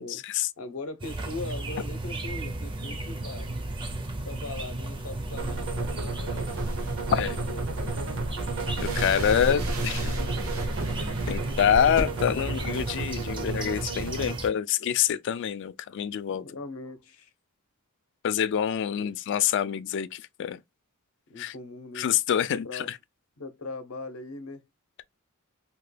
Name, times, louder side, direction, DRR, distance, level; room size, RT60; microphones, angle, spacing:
voice 1, 0.0-0.5 7.1-7.4 8.8-10.1 11.3-16.4 18.2-20.6 21.4-21.5 22.0-23.0, left 9 dB, 55° left, 0.3 m, -26 dB
voice 2, 0.6-3.5 4.2-6.5 7.4-8.0 16.4-17.3 19.0-19.1 21.3-22.1 22.5-22.9 23.4-24.6, left 2 dB, 75° left, 0.7 m, -40 dB
sound 1, 1.0-14.5, right 2 dB, 25° right, 0.5 m, -35 dB
sound 2, 5.3-14.4, right 4 dB, 65° right, 0.7 m, -34 dB
sound 3, 5.4-12.0, equal, 80° right, 1.1 m, -35 dB
2.9 x 2.2 x 3.2 m
head